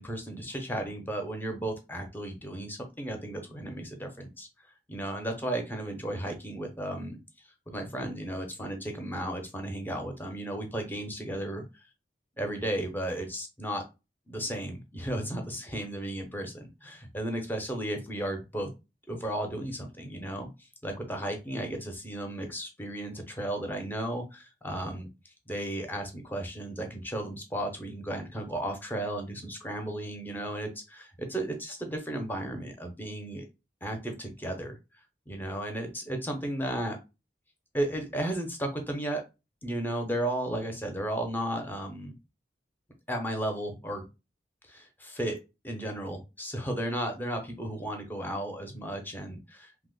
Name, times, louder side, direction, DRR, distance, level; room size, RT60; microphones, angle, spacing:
voice 1, 0.0-4.5 4.9-7.2 7.7-11.8 12.4-13.8 14.3-18.7 19.1-20.5 20.8-25.1 25.5-33.4 33.8-34.8 35.3-37.0 37.7-39.2 39.6-42.1 43.1-44.0 44.7-45.4 45.6-49.9, right 1 dB, 10° left, 4 dB, 0.5 m, -34 dB
2.8 x 2.0 x 3.7 m, 0.27 s
head